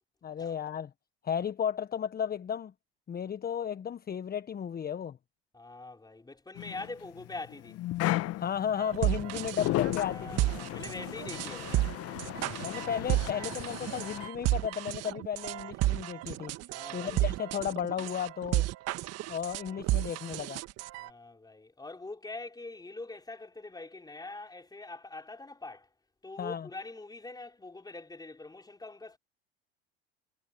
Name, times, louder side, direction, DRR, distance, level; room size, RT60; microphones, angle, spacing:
voice 1, 0.2-0.9 1.2-2.7 3.1-5.2 8.4-10.5 12.6-16.5 16.9-18.7 19.3-20.6 26.4-26.7, left 8 dB, 30° left, 1.3 m, -34 dB
voice 2, 5.5-7.8 10.1-11.9 15.5-15.7 16.7-17.2 21.0-25.9 26.2-29.2, left 3 dB, 15° left, 3.9 m, -44 dB
sound 1, 6.6-14.3, left 16 dB, 50° left, 1.1 m, -35 dB
sound 2, 8.8-21.1, right 17 dB, 55° right, 1.6 m, -32 dB
hypercardioid pair, 75°, 30 cm